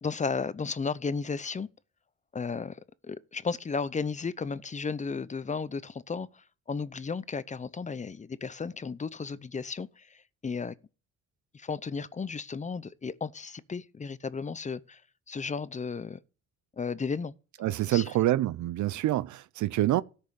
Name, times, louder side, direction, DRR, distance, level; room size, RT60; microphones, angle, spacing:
voice 1, 0.0-1.7 2.3-2.8 3.0-10.7 11.5-15.0 15.3-16.2 16.8-17.3 17.6-18.1, left 5 dB, 25° left, 0.7 m, -34 dB
voice 2, 17.6-20.0, right 14 dB, 70° right, 0.6 m, -26 dB
13.0 x 5.4 x 6.5 m
cardioid pair, 90°, 30 cm